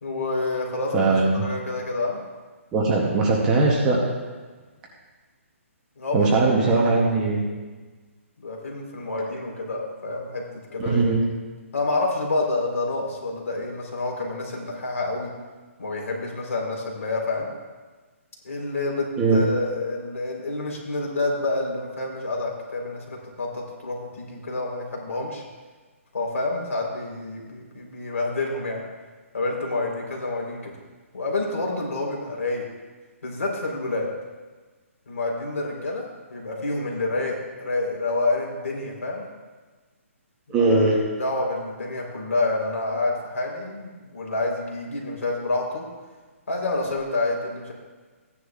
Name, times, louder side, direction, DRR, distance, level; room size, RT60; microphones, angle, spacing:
voice 1, 0.0-1.1 1.4-2.2 6.0-6.3 6.6-6.9 8.4-10.5 10.7-11.1 11.7-15.3 15.8-17.5 18.4-25.4 26.1-28.8 29.3-30.8 31.1-32.7 33.2-34.1 35.1-39.3 40.5-40.9 41.2-45.9 46.5-47.7, left 2 dB, 80° left, 0 dB, 3.5 m, -28 dB
voice 2, 0.9-1.4 2.7-4.0 6.1-7.4 10.8-11.2 19.2-19.4 40.5-41.0, right 3 dB, 10° right, -2 dB, 0.7 m, -20 dB
15.5 x 9.9 x 2.4 m, 1.4 s
hypercardioid pair, 180°, 8 cm